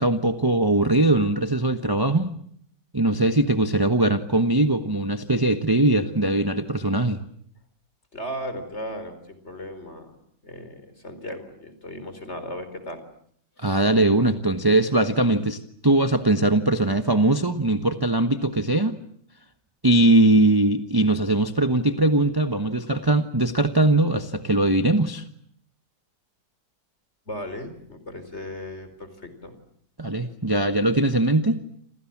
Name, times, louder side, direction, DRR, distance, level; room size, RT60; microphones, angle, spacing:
voice 1, 0.0-2.3 2.9-7.2 13.6-15.6 15.8-19.0 19.8-25.2 30.0-31.6, right 2 dB, 15° right, 8 dB, 1.1 m, -21 dB
voice 2, 8.1-10.2 10.4-13.0 13.6-13.8 27.3-29.5, equal, 40° left, 10 dB, 4.6 m, -36 dB
29.0 x 27.0 x 7.4 m, 0.65 s
omnidirectional pair, 1.9 m